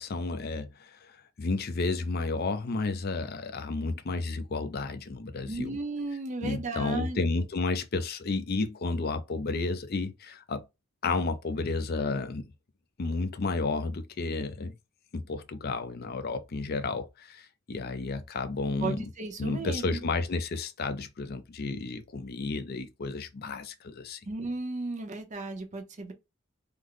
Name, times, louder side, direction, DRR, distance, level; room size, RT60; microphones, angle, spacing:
voice 1, 0.0-5.8 6.4-10.6 11.0-12.5 13.0-14.7 15.1-19.1 19.4-24.2, left 3 dB, 50° left, 0.5 m, -32 dB
voice 2, 5.5-7.2 18.8-20.0 24.3-26.1, right 3 dB, 35° right, 0.7 m, -35 dB
3.3 x 2.1 x 3.7 m
head